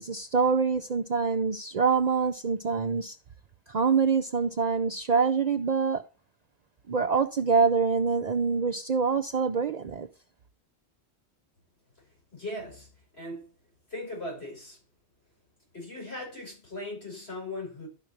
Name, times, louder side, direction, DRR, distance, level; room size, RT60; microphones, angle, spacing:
voice 1, 0.0-3.2 3.7-6.0 6.9-10.1, right 5 dB, 50° right, 0.5 m, -25 dB
voice 2, 12.3-12.9 13.1-13.5 13.9-14.8 15.7-17.9, left 1 dB, 70° left, 6.2 m, -38 dB
12.0 x 5.2 x 4.4 m
omnidirectional pair, 1.1 m